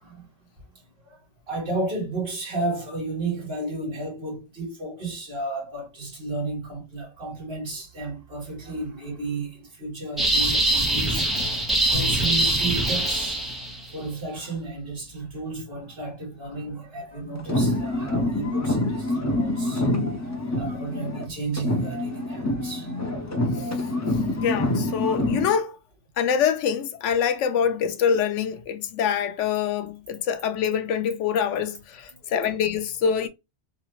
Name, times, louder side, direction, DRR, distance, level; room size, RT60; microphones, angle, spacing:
voice 1, 1.5-11.3 11.9-13.4 13.9-19.9 20.6-22.9, right 2 dB, 55° right, 1.8 m, -33 dB
sound 1, 10.2-13.9, right 2 dB, ahead, 0.8 m, -23 dB
Bowed string instrument, 11.9-14.7, left 1 dB, 50° left, 0.8 m, -38 dB
sound 2, 17.4-21.3 21.6-25.5, left 1 dB, 25° left, 0.3 m, -26 dB
voice 2, 24.4-25.8 26.2-33.3, left 7 dB, 80° left, 0.9 m, -25 dB
3.4 x 2.4 x 2.9 m
omnidirectional pair, 1.2 m